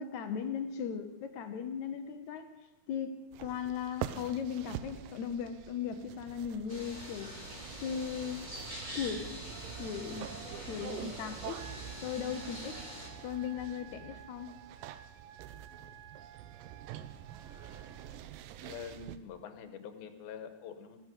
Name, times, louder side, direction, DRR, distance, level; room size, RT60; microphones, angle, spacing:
voice 1, 0.0-2.5 2.9-7.3 7.8-8.4 9.0-9.4 9.8-10.3 10.7-11.7 12.0-12.8 13.2-14.5, left 7 dB, 70° left, 7 dB, 1.9 m, -37 dB
sound 1, 3.3-19.2, right 12 dB, 80° right, 2.2 m, -46 dB
sound 2, 6.7-13.1, right 1 dB, 15° right, 2.7 m, -44 dB
Wind instrument woodwind instrument, 11.5-18.1, right 7 dB, 60° right, 3.1 m, -55 dB
voice 2, 18.6-21.0, left 7 dB, 85° left, 7 dB, 3.0 m, -45 dB
15.5 x 14.5 x 5.4 m, 1.1 s
omnidirectional pair, 4.2 m